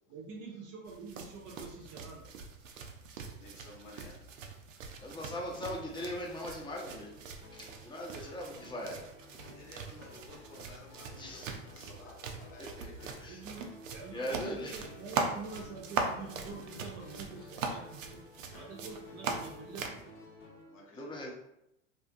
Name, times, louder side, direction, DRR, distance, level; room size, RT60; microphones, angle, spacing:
voice 1, 0.1-2.3 5.4-5.5 13.2-13.7 13.9-18.2 18.5-20.0, right 4 dB, 45° right, -1 dB, 0.6 m, -46 dB
sound 1, 0.9-20.0, right 4 dB, 85° right, 0.5 m, -41 dB
voice 2, 3.3-4.3 9.4-13.1 14.4-14.5 20.7-21.3, left 1 dB, 75° left, -2 dB, 1.0 m, -54 dB
voice 3, 5.0-7.2 7.5-9.0 11.2-11.6 12.6-13.4 14.1-14.8 21.0-21.3, equal, 15° left, -2 dB, 0.6 m, -40 dB
sound 2, 5.5-20.8, left 2 dB, 50° left, 0.9 m, -54 dB
2.4 x 2.4 x 2.5 m, 0.83 s
hypercardioid pair, 90°, 37 cm